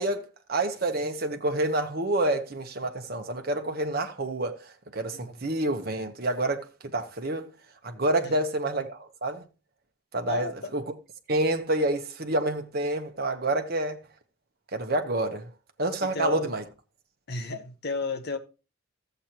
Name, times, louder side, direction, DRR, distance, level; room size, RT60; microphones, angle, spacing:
voice 1, 0.0-4.6 4.9-7.5 7.8-9.4 10.1-10.8 11.3-14.0 14.7-15.5 15.8-16.6, right 2 dB, 45° right, 1.1 m, -28 dB
voice 2, 5.1-5.5 8.2-8.4 10.3-10.7 16.1-16.5 17.3-18.4, left 3 dB, 50° left, 1.0 m, -33 dB
13.0 x 7.9 x 3.0 m
head